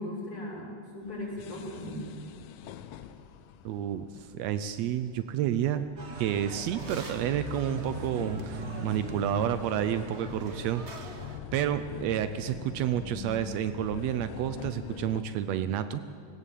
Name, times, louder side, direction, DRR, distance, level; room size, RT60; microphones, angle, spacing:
voice 1, 0.0-2.0, left 1 dB, 25° left, -4 dB, 6.8 m, -37 dB
sound 1, 1.0-15.2, left 9 dB, 90° left, 2.5 m, -44 dB
voice 2, 3.6-4.0 4.3-5.8 6.2-11.2 11.5-16.0, right 10 dB, 85° right, 11 dB, 1.5 m, -30 dB
sound 2, 6.0-11.4, right 3 dB, 55° right, 0.7 m, -40 dB
18.5 x 18.5 x 8.4 m, 2.3 s
omnidirectional pair, 3.8 m